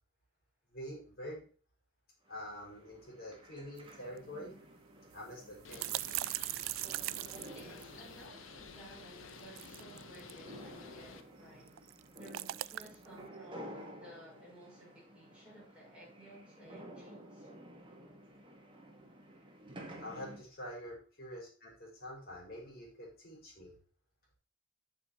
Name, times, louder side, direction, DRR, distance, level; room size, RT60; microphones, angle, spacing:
voice 1, 0.7-1.4 2.3-4.6 5.1-5.8 20.0-23.7, equal, 50° left, 5.9 m, -46 dB
sound 1, 2.3-20.4, right 1 dB, 25° right, 1.9 m, -53 dB
sound 2, 3.8-3.9 4.2-4.3 5.1-8.3 9.3-10.4 11.7-13.1, right 17 dB, 80° right, 0.3 m, -39 dB
Bird, 5.6-11.2, left 4 dB, 80° left, 0.9 m, -52 dB
voice 2, 7.5-11.9 12.2-17.5, right 1 dB, 5° right, 5.9 m, -56 dB
8.5 x 7.8 x 4.4 m
head